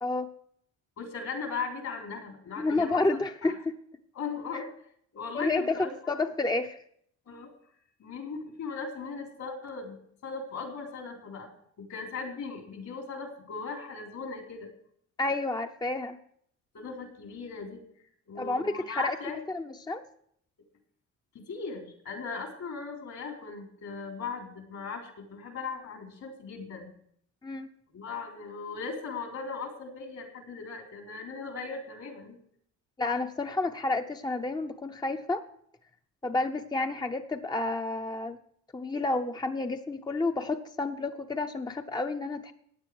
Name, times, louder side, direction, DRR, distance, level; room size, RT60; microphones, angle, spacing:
voice 1, 1.0-3.6 4.1-4.7 5.1-6.2 7.2-7.5 8.0-10.0 10.2-11.5 11.8-14.7 16.7-17.8 18.3-19.4 21.3-26.9 27.9-32.4, left 5 dB, 65° left, 2 dB, 3.8 m, -38 dB
voice 2, 2.6-3.7 4.5-4.6 5.3-6.8 15.2-16.2 18.4-19.2 19.5-20.0 27.4-27.7 33.0-35.4 36.2-38.4 38.7-42.5, left 2 dB, 15° left, 6 dB, 0.7 m, -30 dB
15.0 x 9.5 x 4.7 m, 0.67 s
cardioid pair, 90°, 30 cm